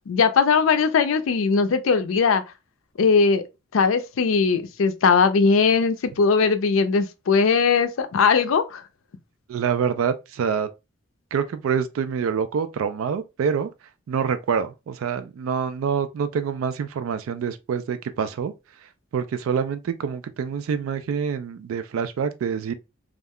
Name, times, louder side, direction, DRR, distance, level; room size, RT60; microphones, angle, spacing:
voice 1, 0.1-2.4 3.0-3.4 3.7-8.8, left 5 dB, 80° left, 0.4 m, -19 dB
voice 2, 9.5-10.7 11.3-13.7 14.1-18.5 19.1-22.7, right 7 dB, 85° right, 0.3 m, -26 dB
2.4 x 2.1 x 3.5 m
head